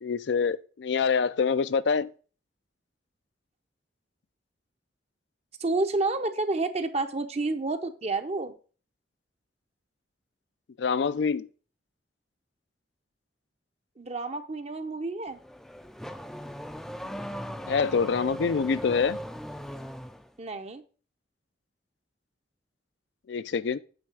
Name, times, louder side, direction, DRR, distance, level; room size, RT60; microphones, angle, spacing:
voice 1, 0.0-2.1 10.8-11.5 17.7-19.2 23.3-23.8, left 5 dB, 65° left, 0.4 m, -26 dB
voice 2, 5.6-8.5 14.0-15.4 20.4-20.8, right 3 dB, 35° right, 0.7 m, -29 dB
Car / Accelerating revving vroom, 15.3-20.3, equal, ahead, 0.4 m, -38 dB
8.6 x 3.3 x 6.0 m
head